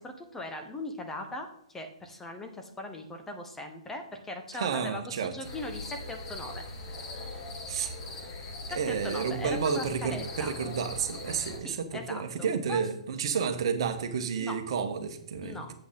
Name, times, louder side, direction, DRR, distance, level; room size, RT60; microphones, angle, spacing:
voice 1, 0.0-6.6 7.1-7.4 8.8-10.5 11.6-12.8 14.4-14.6 15.4-15.7, left 1 dB, 10° left, 4 dB, 1.0 m, -40 dB
voice 2, 4.5-5.3 7.7-8.0 8.8-15.7, right 6 dB, 50° right, 7 dB, 1.1 m, -31 dB
sound 1, 5.4-11.6, left 2 dB, 35° left, 1.8 m, -40 dB
8.5 x 7.8 x 3.7 m, 0.69 s
figure-of-eight pair, 120°, 3 cm